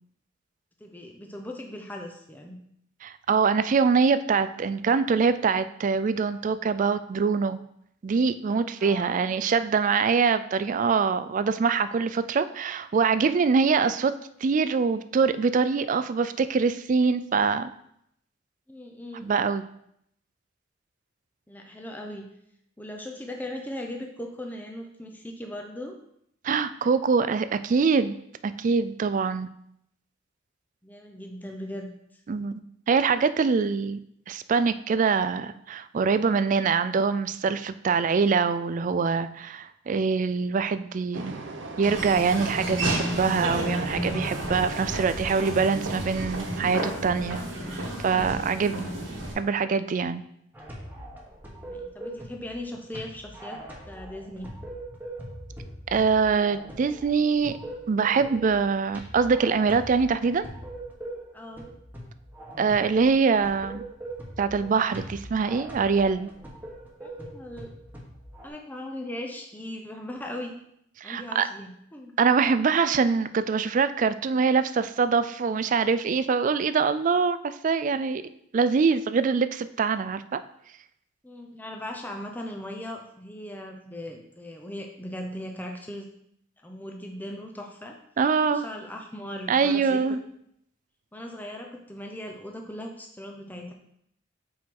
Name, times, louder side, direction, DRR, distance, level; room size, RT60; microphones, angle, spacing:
voice 1, 0.8-2.6 8.8-9.3 18.7-19.3 21.5-22.2 22.8-25.9 30.8-32.2 51.6-53.6 53.9-54.5 61.3-61.8 67.0-67.7 68.4-70.5 71.0-72.1 81.2-86.1 86.6-88.0 88.5-90.0 91.1-93.7, left 1 dB, 10° left, 2 dB, 0.6 m, -38 dB
voice 2, 3.0-7.6 8.0-14.1 14.4-17.7 19.2-19.6 26.4-28.1 28.4-29.5 32.3-32.6 32.9-34.0 34.3-41.3 41.8-47.4 48.0-48.9 49.4-50.2 55.9-57.6 57.9-60.5 62.6-63.8 64.4-66.3 71.0-71.5 72.2-78.2 78.5-80.4 88.2-88.7 89.5-90.2, right 5 dB, 40° right, 12 dB, 0.3 m, -24 dB
Train, 41.1-46.8, right 2 dB, 70° right, 0.8 m, -39 dB
Laughter / Walk footsteps, 41.8-49.3, right 1 dB, 85° right, 1.7 m, -31 dB
sound 1, 50.5-68.5, right 1 dB, 10° right, 1.1 m, -42 dB
7.3 x 4.5 x 3.7 m, 0.73 s
head